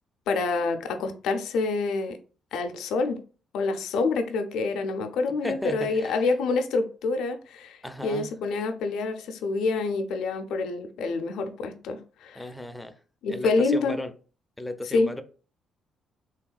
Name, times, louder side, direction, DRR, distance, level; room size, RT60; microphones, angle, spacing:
voice 1, 0.3-2.2 2.5-3.2 3.5-12.4 13.2-14.0 14.9-15.1, left 3 dB, 85° left, 6 dB, 0.4 m, -27 dB
voice 2, 5.4-6.2 7.8-8.3 12.4-13.0 13.3-14.1 14.6-15.2, left 1 dB, 10° left, 9 dB, 0.3 m, -35 dB
3.3 x 2.3 x 2.2 m, 0.39 s
cardioid pair, 90°, 0 cm